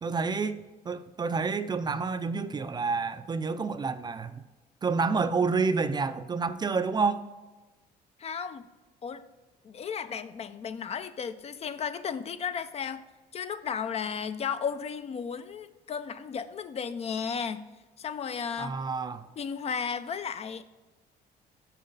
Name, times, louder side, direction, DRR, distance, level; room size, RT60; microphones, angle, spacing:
voice 1, 0.0-4.4 4.8-7.2 18.6-19.3, right 4 dB, 25° right, 11 dB, 0.4 m, -29 dB
voice 2, 8.2-8.7 9.0-9.2 9.6-13.0 13.3-17.7 18.0-18.8 19.4-20.6, left 6 dB, 40° left, 12 dB, 0.4 m, -34 dB
6.6 x 6.1 x 3.9 m, 1.2 s
cardioid pair, 110°, 17 cm